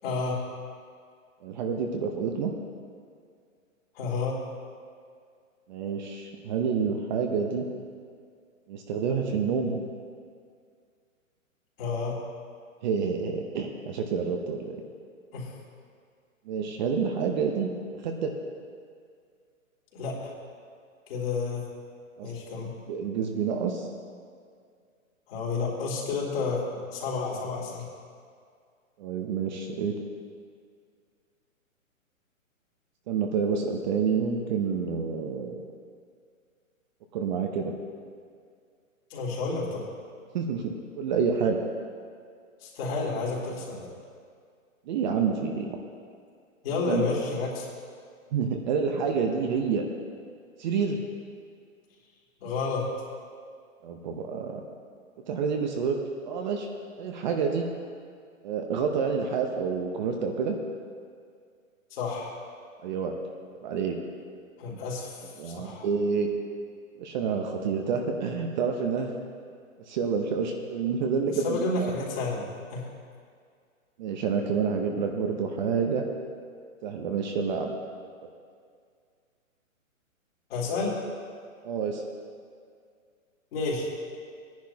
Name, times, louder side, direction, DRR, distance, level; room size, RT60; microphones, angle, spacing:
voice 1, 0.0-0.4 3.9-4.4 11.8-12.2 15.3-15.5 19.9-20.3 21.1-21.6 22.2-22.7 25.3-26.6 26.9-27.9 39.1-39.9 42.6-43.9 46.6-47.7 52.4-52.8 61.9-62.3 64.6-65.9 71.1-72.9 80.5-81.0 83.5-83.9, left 4 dB, 45° left, -4 dB, 3.4 m, -30 dB
voice 2, 1.4-2.5 5.7-7.7 8.7-9.8 12.8-14.8 16.5-17.7 18.0-18.3 22.2-22.3 22.9-23.9 29.0-29.9 33.1-35.6 37.1-37.7 40.3-41.6 44.9-45.8 46.9-47.0 48.3-49.8 50.6-51.0 53.8-54.6 55.3-56.7 57.0-57.7 58.4-60.6 62.8-63.1 63.6-63.9 65.4-66.3 67.0-69.1 69.9-71.9 74.0-76.0 76.8-77.7 81.6-82.1, right 6 dB, 35° right, 3 dB, 0.8 m, -28 dB
18.0 x 10.5 x 2.9 m, 2.1 s
hypercardioid pair, 145°, 41 cm